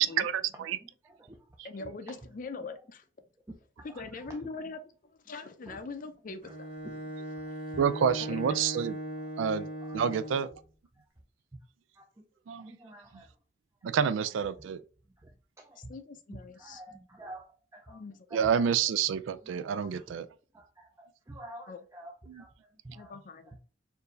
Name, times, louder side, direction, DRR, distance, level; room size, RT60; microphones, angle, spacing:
voice 1, 0.0-0.8 1.6-1.9 7.8-9.0 9.4-9.7 9.9-10.5 12.5-12.7 13.8-14.8 18.3-20.3 22.3-22.4, right 7 dB, 90° right, 0.3 m, -28 dB
voice 2, 0.8-1.4 3.8-4.4 5.7-5.8 6.8-6.9 9.8-10.0 12.0-12.2 12.6-13.3 14.6-14.7 15.2-15.3 15.6-15.8 16.6-18.0 18.3-18.5 19.4-19.5 19.8-19.9 20.5-23.1 23.5-23.6, right 1 dB, 15° right, 0.4 m, -49 dB
voice 3, 1.6-3.0 3.8-6.7 8.2-8.3 15.8-16.8 17.9-18.4 21.7-21.8 23.0-23.5, left 3 dB, 45° left, 0.5 m, -42 dB
Bowed string instrument, 6.4-10.6, right 1 dB, 35° right, 1.9 m, -39 dB
4.4 x 2.6 x 3.1 m
head